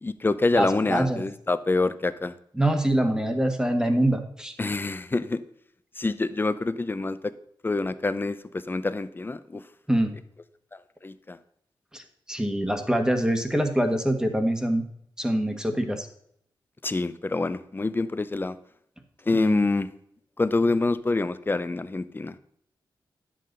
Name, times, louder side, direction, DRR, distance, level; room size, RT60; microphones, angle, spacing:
voice 1, 0.0-2.3 4.6-5.4 6.0-7.3 7.6-9.6 11.0-11.4 16.8-18.6 19.3-19.9 20.4-22.4, left 3 dB, 25° left, 13 dB, 0.6 m, -26 dB
voice 2, 0.5-1.2 2.6-4.5 9.9-10.1 11.9-14.8 15.2-16.1 19.3-19.6, right 1 dB, 10° right, 6 dB, 1.3 m, -24 dB
10.5 x 7.6 x 3.9 m, 0.70 s
wide cardioid pair, 90°, 9 cm